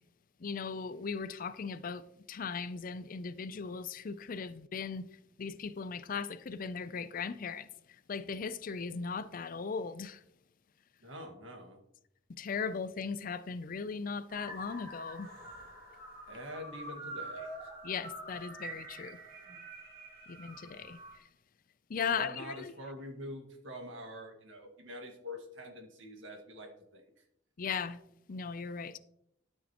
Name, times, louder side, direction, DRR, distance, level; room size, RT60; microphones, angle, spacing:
voice 1, 0.4-10.2 12.3-15.3 17.8-19.2 20.3-21.3 21.9-22.7 27.6-28.0 28.3-29.0, left 5 dB, 45° left, 0.4 m, -38 dB
voice 2, 11.0-11.8 16.3-17.7 19.5-19.6 22.1-27.0, equal, 85° right, 1.8 m, -45 dB
sound 1, 14.3-21.2, right 1 dB, 55° right, 3.1 m, -46 dB
12.5 x 6.4 x 3.0 m
head